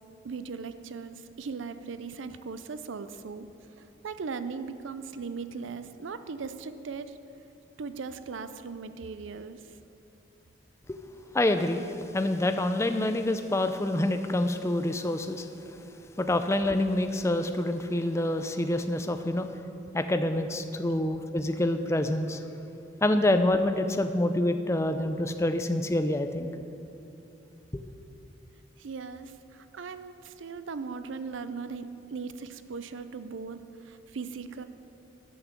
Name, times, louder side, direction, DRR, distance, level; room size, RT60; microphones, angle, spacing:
voice 1, 0.2-3.5 3.8-7.2 7.8-9.6 20.9-21.0 28.8-34.6, right 5 dB, 85° right, 11 dB, 0.5 m, -38 dB
voice 2, 11.3-15.5 16.2-19.5 19.9-22.4 23.0-26.5 27.7-27.8, left 1 dB, 15° left, 8 dB, 0.4 m, -27 dB
10.0 x 5.9 x 7.2 m, 2.8 s
head